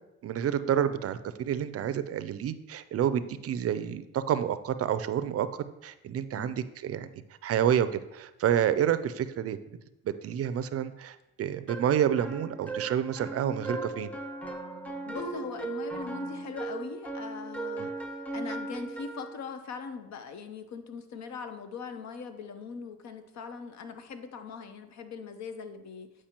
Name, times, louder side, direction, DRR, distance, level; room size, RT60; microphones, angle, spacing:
voice 1, 0.2-7.1 7.4-9.6 10.0-14.1 17.8-17.9, right 9 dB, 50° right, 13 dB, 0.4 m, -29 dB
sound 1, 11.7-19.4, right 2 dB, 5° left, 0.7 m, -37 dB
voice 2, 15.1-17.9 18.3-26.1, left 5 dB, 65° left, 8 dB, 0.7 m, -41 dB
8.6 x 4.8 x 2.9 m, 0.94 s
cardioid pair, 90°, 30 cm